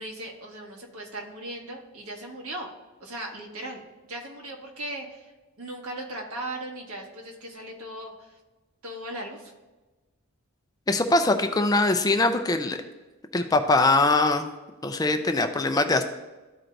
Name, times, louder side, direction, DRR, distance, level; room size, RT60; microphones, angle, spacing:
voice 1, 0.0-2.7 3.0-5.3 5.6-8.4 8.8-9.5, right 1 dB, 85° right, 1 dB, 1.6 m, -38 dB
voice 2, 10.9-12.8 13.3-14.5 14.8-16.0, left 2 dB, 15° left, 7 dB, 0.4 m, -22 dB
13.5 x 4.5 x 2.6 m, 1.2 s
head